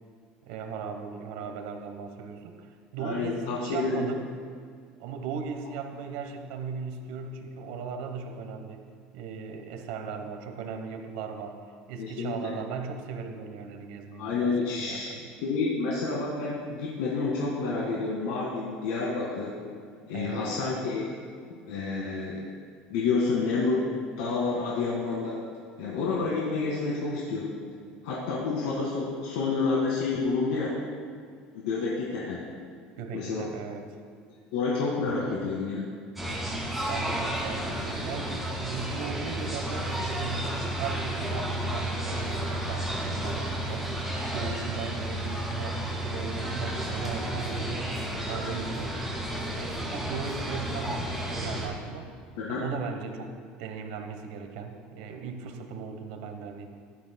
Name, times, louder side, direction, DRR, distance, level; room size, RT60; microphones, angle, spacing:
voice 1, 0.4-2.7 2.9-4.3 5.0-8.8 9.1-11.6 11.9-15.3 20.1-20.5 33.0-33.9 36.9-43.9 44.3-48.9 49.5-52.1 52.5-56.7, right 5 dB, 85° right, 5 dB, 1.1 m, -37 dB
voice 2, 3.0-4.1 12.0-12.5 14.2-15.2 15.4-19.5 20.1-21.1 21.7-22.4 22.9-23.9 24.2-25.4 25.8-27.5 28.0-30.7 31.5-32.4 33.1-33.5 34.5-35.8 52.4-52.6, left 4 dB, 90° left, -5 dB, 2.0 m, -29 dB
sound 1, 36.2-51.7, right 1 dB, ahead, 2.1 m, -32 dB
16.0 x 12.0 x 2.3 m, 2.1 s
cardioid pair, 160°, 3 cm